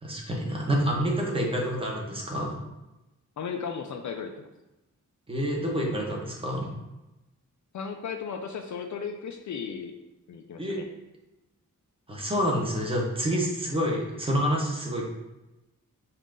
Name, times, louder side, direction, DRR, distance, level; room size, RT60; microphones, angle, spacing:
voice 1, 0.0-2.6 5.3-6.7 10.6-10.8 12.1-15.0, equal, 15° right, -1 dB, 0.9 m, -28 dB
voice 2, 3.4-4.5 7.7-9.9 10.3-10.9, left 6 dB, 65° left, 4 dB, 0.4 m, -35 dB
5.5 x 2.5 x 3.7 m, 0.99 s
wide cardioid pair, 155°, 32 cm